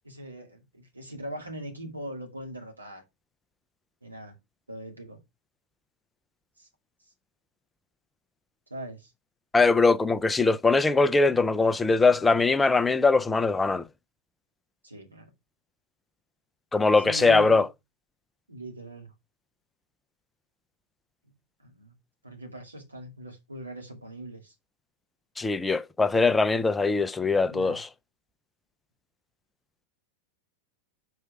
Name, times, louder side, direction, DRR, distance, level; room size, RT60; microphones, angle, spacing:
voice 1, 0.0-3.0 4.0-4.3 4.7-5.2 6.6-6.7 8.7-9.1 14.8-15.3 17.0-17.7 18.5-19.1 21.3-21.9 22.2-24.5 27.5-27.8, right 1 dB, 85° right, 2.4 m, -41 dB
voice 2, 9.5-13.8 16.7-17.7 25.4-27.9, left 3 dB, 10° left, 0.5 m, -21 dB
5.5 x 4.6 x 6.2 m
figure-of-eight pair, 90°, 0 cm